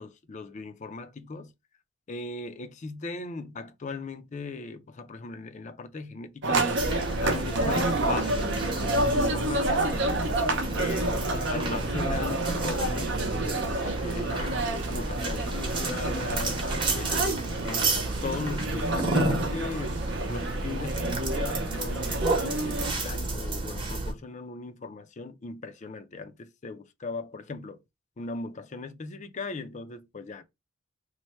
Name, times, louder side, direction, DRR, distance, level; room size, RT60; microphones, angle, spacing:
voice 1, 0.0-1.5 2.1-6.7 7.2-11.1 11.5-14.6 14.9-16.6 16.9-18.0 18.2-20.0 20.3-27.8 28.2-30.4, left 3 dB, 35° left, 0.4 m, -38 dB
sound 1, 6.4-22.9, right 2 dB, 55° right, 0.6 m, -29 dB
sound 2, 6.8-24.1, right 2 dB, 25° right, 0.9 m, -31 dB
3.1 x 2.1 x 4.2 m
head